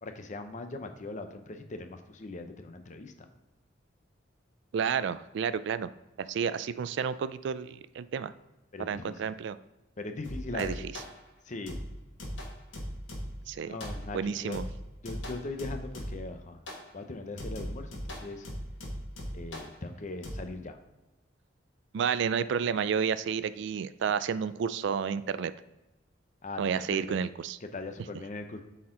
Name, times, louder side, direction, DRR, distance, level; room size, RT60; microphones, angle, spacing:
voice 1, 0.0-3.3 8.7-9.2 10.0-10.9 11.5-11.9 13.6-14.6 15.0-16.6 16.9-18.5 19.3-20.8 26.4-27.2 27.6-28.6, left 2 dB, 40° left, 7 dB, 0.7 m, -40 dB
voice 2, 4.7-5.9 6.2-8.3 8.8-9.6 10.5-10.7 13.5-13.7 14.1-14.6 21.9-25.5 26.6-27.6, right 7 dB, 65° right, 14 dB, 0.3 m, -30 dB
sound 1, 10.2-11.2 11.7-13.5 13.8-14.2 14.5-16.3 16.7-16.9 17.4-19.8 20.2-20.4, equal, 85° left, 1.7 m, -39 dB
8.3 x 4.4 x 3.7 m, 1.0 s
head